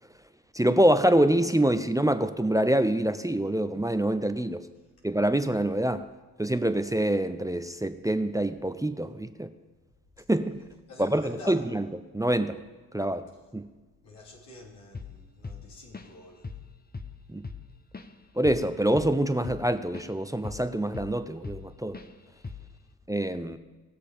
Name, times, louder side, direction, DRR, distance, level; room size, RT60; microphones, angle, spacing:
voice 1, 0.5-4.6 5.0-6.0 6.4-9.5 10.3-10.6 11.0-11.8 12.1-12.5 12.9-13.3 13.5-13.7 17.3-17.4 18.4-22.0 23.1-23.6, right 1 dB, 10° right, 10 dB, 0.7 m, -25 dB
voice 2, 10.9-11.6 14.0-16.5, left 1 dB, 90° left, -3 dB, 2.6 m, -47 dB
Drum kit / Drum, 14.9-15.2 15.4-16.2 16.4-16.7 16.9-20.1 20.4-21.7 21.9-22.1 22.4-22.8, left 4 dB, 25° left, 0.9 m, -40 dB
18.5 x 6.8 x 5.1 m, 1.3 s
supercardioid pair, 50°, 40 cm